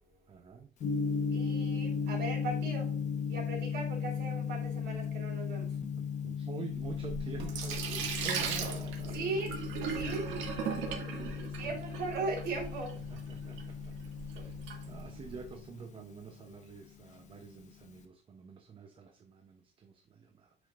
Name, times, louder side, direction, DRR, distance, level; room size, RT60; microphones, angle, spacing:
voice 1, 0.3-0.7 5.9-9.6 11.2-11.8 13.1-13.9 14.3-20.5, right 6 dB, 30° right, 0.7 m, -47 dB
Gong, 0.8-18.0, left 6 dB, 40° left, 1.1 m, -37 dB
voice 2, 1.3-2.9 3.3-5.7 9.1-10.3 11.6-13.0 14.3-14.5, right 3 dB, 65° right, 3.6 m, -38 dB
Sink (filling or washing), 6.7-15.5, right 6 dB, 90° right, 1.9 m, -39 dB
9.4 x 5.1 x 2.5 m
cardioid pair, 160°, 19 cm